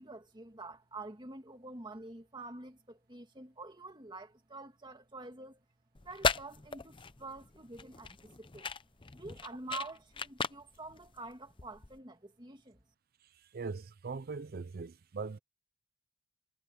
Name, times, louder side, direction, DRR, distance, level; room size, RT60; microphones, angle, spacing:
voice 1, 0.0-5.6 6.0-8.7 9.1-12.8, right 3 dB, 20° right, 2.2 m, -47 dB
sound 1, 5.9-12.0, left 5 dB, 25° left, 0.7 m, -38 dB
voice 2, 13.2-15.4, right 4 dB, 45° right, 0.4 m, -41 dB
head